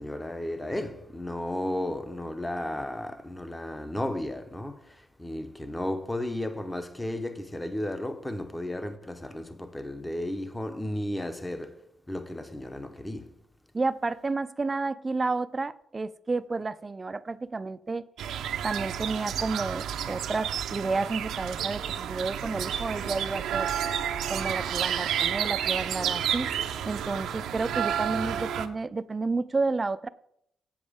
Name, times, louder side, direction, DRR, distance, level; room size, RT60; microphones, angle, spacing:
voice 1, 0.0-13.3, left 1 dB, 10° left, 0.7 m, -34 dB
voice 2, 13.7-18.0 18.6-23.7 24.3-26.5 26.8-30.1, right 3 dB, 25° right, 0.4 m, -31 dB
sound 1, 18.2-28.7, right 9 dB, 80° right, 0.6 m, -30 dB
7.8 x 7.1 x 5.0 m
cardioid pair, 90°, 0 cm